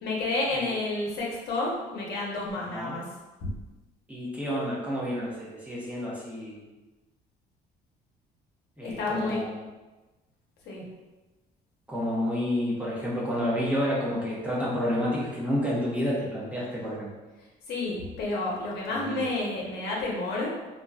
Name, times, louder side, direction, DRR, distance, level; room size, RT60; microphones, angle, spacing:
voice 1, 0.0-3.0 3.4-3.5 8.8-9.4 10.7-10.8 17.7-20.5, left 2 dB, 75° left, -3 dB, 0.9 m, -30 dB
voice 2, 2.6-2.9 4.1-6.6 8.8-9.6 11.9-17.1 18.9-19.2, equal, 10° right, -6 dB, 0.8 m, -30 dB
2.9 x 2.6 x 2.3 m, 1.1 s
cardioid pair, 110°, 17 cm